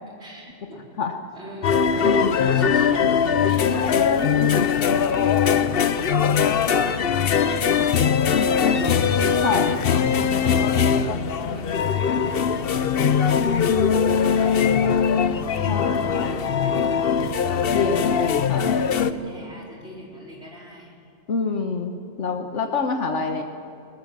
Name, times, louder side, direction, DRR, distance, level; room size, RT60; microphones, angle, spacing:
voice 1, 0.2-0.9 1.3-7.9 8.4-11.8 13.9-15.0 15.7-17.2 18.6-20.9, left 1 dB, 65° right, -3 dB, 5.0 m, -37 dB
sound 1, 1.6-19.1, left 7 dB, 60° left, 0.9 m, -21 dB
voice 2, 4.4-4.7 9.4-9.7 15.7-16.0 17.7-18.7 21.3-23.4, left 4 dB, 85° left, 4 dB, 1.5 m, -26 dB
20.0 x 18.5 x 7.4 m, 2.7 s
omnidirectional pair, 1.2 m